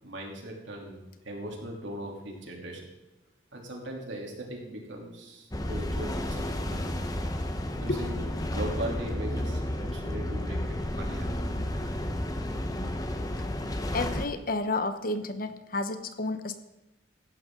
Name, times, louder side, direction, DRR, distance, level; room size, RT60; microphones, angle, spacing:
voice 1, 0.0-1.0 1.2-2.8 3.5-6.9 7.8-11.3, right 1 dB, 85° right, 0 dB, 3.2 m, -39 dB
sound 1, 5.5-14.2, left 1 dB, 20° left, 1.0 m, -32 dB
voice 2, 13.8-16.6, left 2 dB, 50° left, 10 dB, 1.0 m, -31 dB
16.0 x 12.0 x 3.9 m, 1.0 s
head